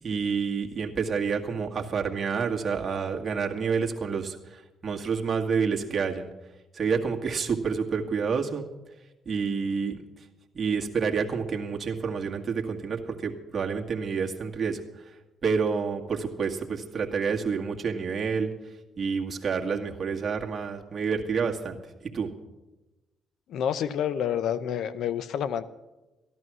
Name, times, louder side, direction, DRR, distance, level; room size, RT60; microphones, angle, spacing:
voice 1, 0.0-6.3 6.7-8.7 9.3-10.0 10.5-15.2 15.4-18.5 19.0-21.8 22.1-22.3, right 5 dB, 45° right, 1 dB, 1.9 m, -28 dB
voice 2, 23.5-25.6, left 9 dB, 75° left, 14 dB, 0.7 m, -28 dB
14.5 x 11.0 x 6.1 m, 1.1 s
cardioid pair, 80°, 0 cm